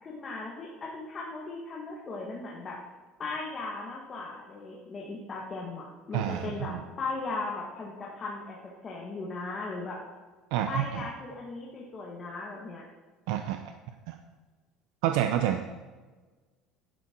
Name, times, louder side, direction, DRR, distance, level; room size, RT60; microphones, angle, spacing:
voice 1, 0.0-2.8 3.2-8.6 8.8-10.0 10.7-12.8, left 3 dB, 20° left, -3 dB, 1.8 m, -37 dB
voice 2, 6.1-6.8 10.5-11.0 13.3-13.6 14.1-14.2 15.0-15.6, right 11 dB, 75° right, 7 dB, 0.8 m, -28 dB
11.5 x 11.0 x 4.5 m, 1.3 s
cardioid pair, 170°, 0 cm